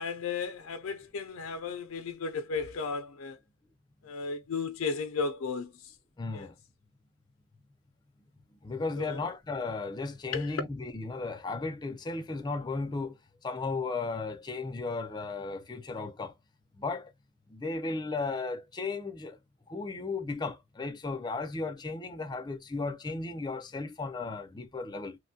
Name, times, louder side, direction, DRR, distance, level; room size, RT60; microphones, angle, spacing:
voice 1, 0.0-3.4 4.0-5.9 6.3-6.5 9.0-9.2 10.3-10.6, left 5 dB, 90° left, 0.4 m, -34 dB
voice 2, 6.2-6.5 8.6-13.2 13.4-16.3 16.8-17.1 17.5-19.4 19.7-25.2, left 3 dB, 20° left, 0.4 m, -35 dB
3.0 x 2.2 x 2.6 m
head